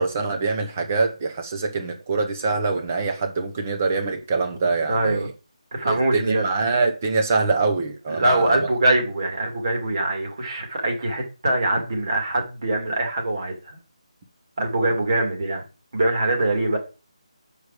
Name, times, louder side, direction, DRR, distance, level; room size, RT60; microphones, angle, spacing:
voice 1, 0.0-5.3 5.8-8.6, right 4 dB, 20° right, 0.9 m, -24 dB
voice 2, 4.9-5.3 5.7-6.4 8.2-13.8 14.6-15.6 15.9-16.8, right 2 dB, 35° right, 2.4 m, -23 dB
8.0 x 5.0 x 4.9 m
figure-of-eight pair, 180°, 3 cm